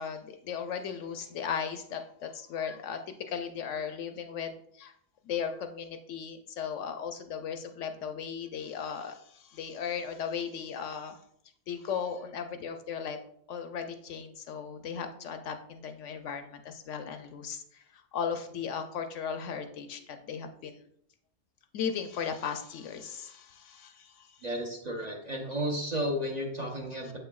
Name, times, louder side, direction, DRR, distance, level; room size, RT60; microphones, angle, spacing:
voice 1, 0.0-4.9 5.2-11.2 11.7-13.2 13.5-17.8 18.1-20.8 21.7-24.3, left 7 dB, 70° left, 7 dB, 0.8 m, -36 dB
voice 2, 24.4-27.2, equal, 40° right, 0 dB, 0.8 m, -33 dB
7.3 x 5.6 x 2.3 m, 0.69 s
omnidirectional pair, 1.4 m